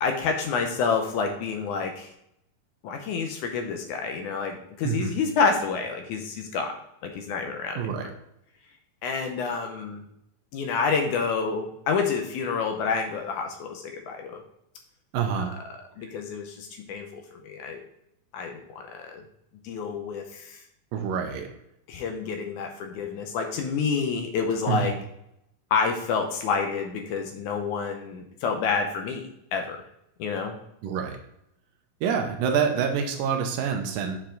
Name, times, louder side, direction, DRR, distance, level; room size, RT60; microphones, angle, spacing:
voice 1, 0.0-2.1 2.8-6.7 7.0-7.9 9.0-10.0 10.5-14.4 15.4-15.6 16.0-17.8 18.3-19.2 19.6-20.6 21.9-24.9 25.7-29.2 29.5-29.8 30.2-30.5, left 5 dB, 80° left, 4 dB, 1.8 m, -28 dB
voice 2, 4.8-5.1 7.8-8.1 15.1-15.6 20.9-21.5 24.7-24.9 30.8-31.2 32.0-34.2, right 7 dB, 80° right, 4 dB, 2.3 m, -27 dB
7.4 x 4.5 x 3.8 m, 0.80 s
omnidirectional pair, 4.2 m